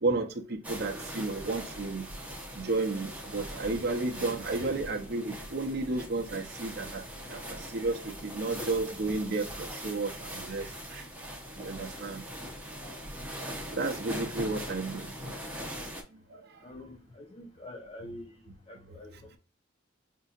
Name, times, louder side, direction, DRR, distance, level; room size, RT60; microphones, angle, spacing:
voice 1, 0.0-2.1 2.5-7.0 7.3-11.0 11.6-12.2 13.7-15.3 18.9-19.0, right 3 dB, 55° right, 0.7 m, -32 dB
sound 1, 0.6-16.0, equal, 10° right, 0.8 m, -41 dB
voice 2, 16.6-18.3 18.7-19.4, left 1 dB, 30° left, 0.6 m, -46 dB
5.4 x 2.7 x 2.4 m
head